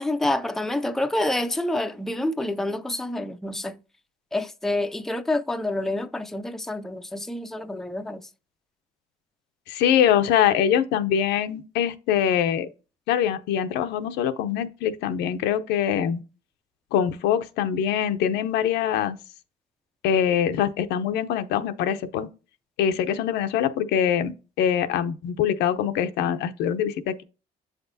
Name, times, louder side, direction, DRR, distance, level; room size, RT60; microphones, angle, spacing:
voice 1, 0.0-3.8 4.3-8.2, left 1 dB, ahead, 0.5 m, -27 dB
voice 2, 9.7-12.7 13.1-16.2 16.9-19.2 20.0-22.3 22.8-27.2, left 9 dB, 85° left, 0.7 m, -23 dB
7.7 x 5.9 x 2.7 m
cardioid pair, 110°, 17 cm